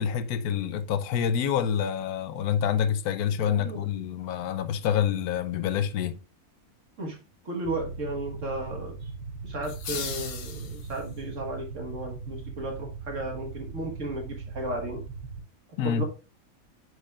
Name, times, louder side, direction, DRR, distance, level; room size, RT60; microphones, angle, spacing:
voice 1, 0.0-6.2 15.8-16.0, left 8 dB, 85° left, 1.1 m, -27 dB
voice 2, 3.5-3.9 7.0-7.2 7.5-9.1 9.4-15.0 15.8-16.1, right 2 dB, 55° right, 1.8 m, -34 dB
sound 1, 7.6-15.4, right 4 dB, 75° right, 1.2 m, -39 dB
sound 2, 9.6-11.2, left 7 dB, 70° left, 1.3 m, -37 dB
9.8 x 4.9 x 2.4 m
omnidirectional pair, 1.6 m